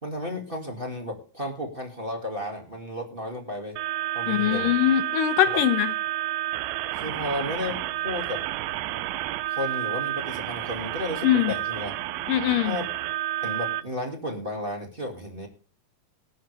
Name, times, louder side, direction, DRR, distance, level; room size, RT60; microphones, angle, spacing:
voice 1, 0.0-3.8 4.1-4.7 5.4-5.6 6.9-8.4 9.5-11.9 12.6-12.9 13.4-15.5, left 1 dB, 25° right, 1 dB, 1.3 m, -33 dB
sound 1, 3.8-13.8, right 15 dB, 75° right, 2.4 m, -30 dB
voice 2, 4.3-5.9 11.2-11.5 12.3-12.8, left 12 dB, 75° left, 11 dB, 2.1 m, -22 dB
19.0 x 9.3 x 3.4 m, 0.38 s
omnidirectional pair, 4.5 m